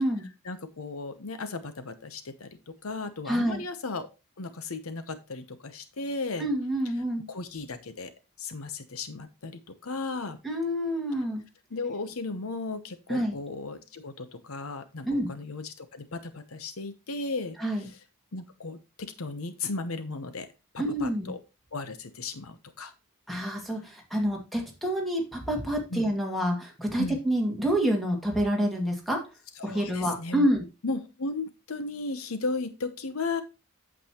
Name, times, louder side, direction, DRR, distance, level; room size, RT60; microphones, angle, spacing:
voice 1, 0.4-4.1 4.4-6.5 7.3-8.1 8.4-10.4 11.7-18.0 18.3-20.5 20.7-21.4 21.7-22.9 25.9-26.1 27.0-27.2 29.6-30.5 30.8-33.4, left 3 dB, 70° left, 11 dB, 0.9 m, -35 dB
voice 2, 3.3-3.6 6.4-7.3 10.4-11.4 13.1-13.4 15.0-15.3 17.6-17.9 20.8-21.3 23.3-29.2 29.6-30.6, equal, ahead, 0 dB, 2.1 m, -27 dB
8.6 x 7.6 x 3.0 m, 0.27 s
head